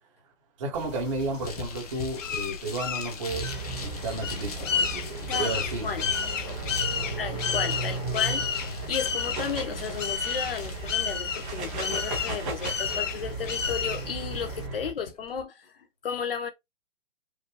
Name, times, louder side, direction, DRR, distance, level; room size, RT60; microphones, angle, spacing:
voice 1, 0.6-5.9 6.9-7.2, right 2 dB, 25° right, 1.6 m, -33 dB
sound 1, 0.7-14.7, left 7 dB, 75° left, 1.1 m, -32 dB
sound 2, 1.4-15.4, left 5 dB, 30° left, 0.9 m, -45 dB
sound 3, 3.3-14.9, right 3 dB, 5° right, 0.8 m, -35 dB
voice 2, 5.3-6.1 6.4-6.5 7.2-16.5, left 6 dB, 45° left, 1.4 m, -34 dB
5.2 x 2.6 x 3.2 m
hypercardioid pair, 175°, 38 cm